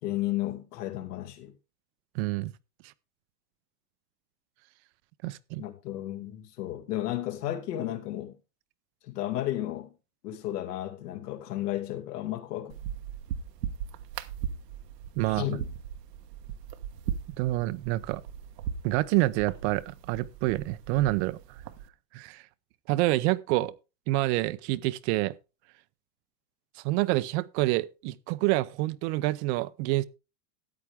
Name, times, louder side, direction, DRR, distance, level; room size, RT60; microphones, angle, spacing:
voice 1, 0.0-1.5 5.6-8.3 9.0-9.9 10.2-12.8 15.3-15.7, left 14 dB, 75° left, 2.5 m, -33 dB
voice 2, 2.1-2.5 5.2-5.6 15.2-15.6 17.4-18.2 18.8-21.4 22.1-22.4 22.9-23.7 24.1-25.3 26.8-30.0, right 18 dB, 45° right, 0.6 m, -27 dB
sound 1, 12.7-21.9, right 8 dB, 80° right, 1.3 m, -39 dB
13.5 x 8.9 x 3.6 m
supercardioid pair, 140°, 48 cm